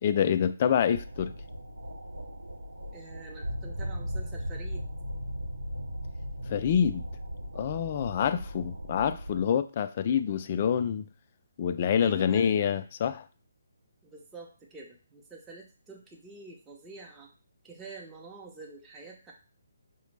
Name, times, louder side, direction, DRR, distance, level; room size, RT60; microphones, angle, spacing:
voice 1, 0.0-1.3 6.4-7.0 7.5-11.1 11.6-13.2, left 8 dB, 40° left, 0.3 m, -26 dB
sound 1, 0.9-9.4, equal, 80° right, 0.6 m, -37 dB
voice 2, 2.9-4.9 8.1-8.5 12.0-12.5 14.0-17.3 17.6-19.3, right 3 dB, 10° right, 0.6 m, -47 dB
4.8 x 2.0 x 3.2 m
figure-of-eight pair, 145°, 0 cm